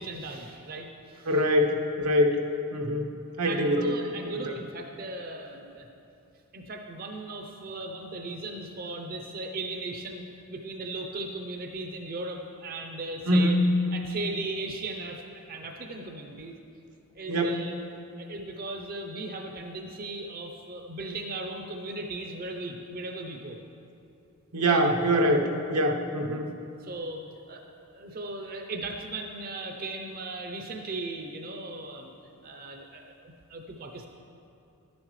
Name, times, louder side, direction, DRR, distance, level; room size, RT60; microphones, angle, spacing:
voice 1, 0.0-1.4 3.4-5.9 6.5-13.6 13.9-16.5 17.2-17.8 18.2-23.6 24.7-24.8 26.8-27.2 27.5-27.6 27.9-32.1 32.4-34.1, right 2 dB, 40° right, 3 dB, 0.6 m, -37 dB
voice 2, 1.3-2.4 2.7-3.1 3.4-3.9 4.5-4.6 13.3-13.7 17.3-17.6 24.5-25.4 25.7-26.5, equal, 85° right, 2 dB, 0.9 m, -24 dB
11.5 x 10.5 x 3.1 m, 2.7 s
head